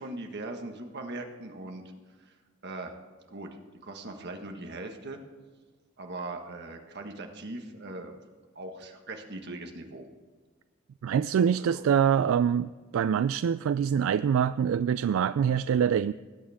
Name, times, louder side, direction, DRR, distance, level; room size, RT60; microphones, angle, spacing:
voice 1, 0.0-1.8 2.2-2.3 2.6-2.9 3.3-3.5 3.8-5.2 6.0-8.2 8.5-10.1 11.6-11.8, right 2 dB, 55° right, 4 dB, 1.5 m, -40 dB
voice 2, 11.0-16.1, right 8 dB, 80° right, 14 dB, 0.3 m, -25 dB
19.5 x 8.8 x 3.6 m, 1.4 s
head